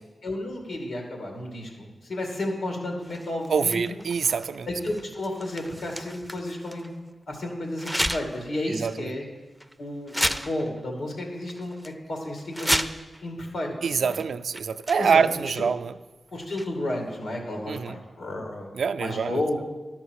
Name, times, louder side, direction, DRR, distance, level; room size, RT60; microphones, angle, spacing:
voice 1, 0.2-4.0 4.7-6.9 7.3-9.2 9.8-12.9 13.2-14.2 15.0-15.5 16.3-18.7 19.0-19.6, left 1 dB, 90° left, 1 dB, 2.3 m, -32 dB
sound 1, 3.0-6.9 7.8-8.5 8.9-9.0 9.6-9.7 10.1-10.8 11.1-11.2 11.5-11.9 12.4-13.2 14.1-14.2 14.5-15.3 16.4-16.9, equal, ahead, 0.4 m, -32 dB
voice 2, 3.5-4.7 8.7-9.1 13.8-16.0 17.7-18.0 18.7-19.4, right 6 dB, 80° right, 12 dB, 0.3 m, -25 dB
12.0 x 5.9 x 6.4 m, 1.2 s
wide cardioid pair, 90°, 0 cm